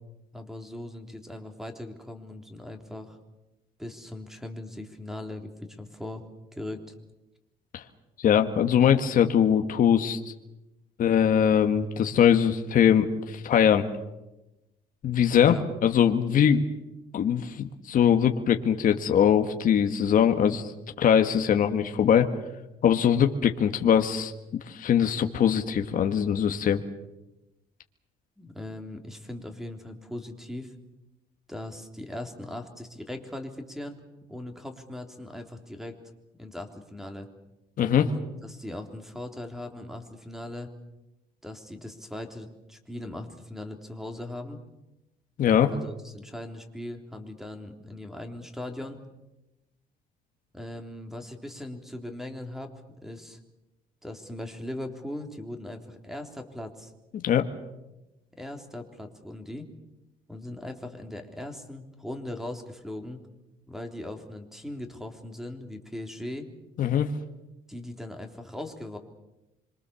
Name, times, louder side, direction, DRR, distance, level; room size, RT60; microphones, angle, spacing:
voice 1, 0.3-3.2 3.8-5.5 5.8-6.2 6.5-6.9 15.3-15.6 28.4-30.7 31.5-34.0 34.3-36.0 36.4-37.3 38.0-40.7 41.4-44.6 45.7-49.0 50.5-52.7 53.0-53.4 54.0-56.9 58.4-59.7 60.3-63.2 63.7-66.5 67.7-69.0, left 1 dB, ahead, 5 dB, 3.5 m, -39 dB
voice 2, 8.2-10.2 11.0-13.9 15.0-15.5 15.8-16.7 17.1-20.7 21.0-22.3 22.8-24.3 24.7-26.8 37.8-38.1 45.4-45.7 57.2-57.5 66.8-67.1, left 8 dB, 55° left, 5 dB, 1.7 m, -22 dB
26.5 x 23.5 x 7.1 m, 0.96 s
cardioid pair, 110°, 17 cm